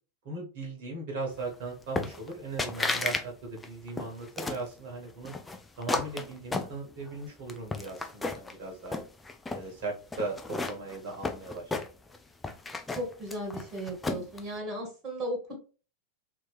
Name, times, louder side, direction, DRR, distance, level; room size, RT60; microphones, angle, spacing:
voice 1, 0.2-5.3 5.7-9.0 9.5-10.4 10.7-11.6, right 3 dB, 50° right, 0 dB, 1.3 m, -38 dB
sound 1, 2.0-2.3 2.6-3.2 3.6-4.7 5.2-7.1 7.5-8.5 8.9-9.6 10.1-12.2 12.4-14.4, left 3 dB, 10° left, 0.4 m, -33 dB
voice 2, 12.9-15.6, right 1 dB, 25° right, 1 dB, 1.5 m, -35 dB
2.9 x 2.8 x 3.4 m, 0.35 s
figure-of-eight pair, 90°, 0 cm